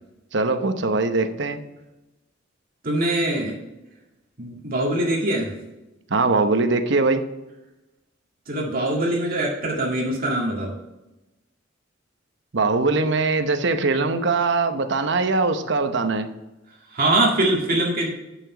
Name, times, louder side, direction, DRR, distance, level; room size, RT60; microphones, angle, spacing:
voice 1, 0.3-1.6 6.1-7.2 12.5-16.3, right 3 dB, 65° right, 8 dB, 0.9 m, -21 dB
voice 2, 2.8-3.6 4.4-5.5 8.5-10.7 16.9-18.1, right 1 dB, 50° right, -2 dB, 1.9 m, -23 dB
9.8 x 6.0 x 4.9 m, 0.99 s
head